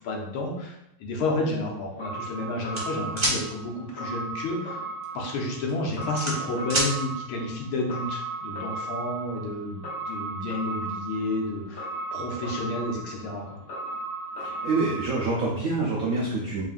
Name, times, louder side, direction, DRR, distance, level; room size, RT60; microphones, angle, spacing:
voice 1, 0.0-4.8 5.1-13.6, left 2 dB, 80° left, -1 dB, 1.7 m, -31 dB
sound 1, 2.0-15.3, right 3 dB, 60° left, 0.6 m, -36 dB
sound 2, 2.7-3.4 5.0-5.3 5.7-6.9, right 1 dB, 30° right, 0.5 m, -26 dB
voice 2, 14.4-16.6, right 3 dB, 90° right, -4 dB, 0.7 m, -26 dB
3.9 x 3.7 x 2.5 m, 0.81 s
omnidirectional pair, 2.2 m